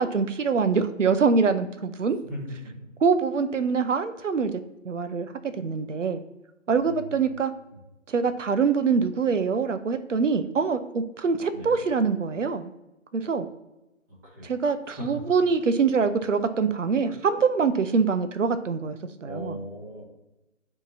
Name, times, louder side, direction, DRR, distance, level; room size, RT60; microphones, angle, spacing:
voice 1, 0.0-2.2 3.0-4.5 4.8-6.2 6.7-7.5 8.1-12.7 13.1-13.5 14.4-19.6, right 5 dB, 70° right, 10 dB, 0.7 m, -24 dB
voice 2, 2.2-2.7 6.8-7.2 7.7-7.8 11.5-11.8 14.2-14.6 14.9-15.1 19.2-20.0, equal, 15° right, -6 dB, 1.2 m, -38 dB
9.8 x 3.8 x 2.7 m, 0.96 s
figure-of-eight pair, 150°, 39 cm